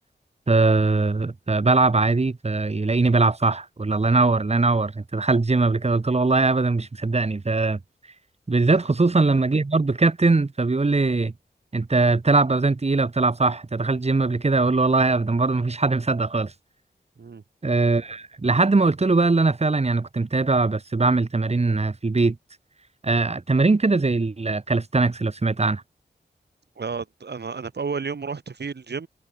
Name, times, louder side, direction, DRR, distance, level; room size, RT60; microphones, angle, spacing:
voice 1, 0.5-7.8 8.5-11.3 11.7-16.5 17.6-22.4 23.0-25.8, right 3 dB, 35° right, 1.4 m, -21 dB
voice 2, 26.8-29.1, right 5 dB, 65° right, 2.2 m, -31 dB
cardioid pair, 50°, 19 cm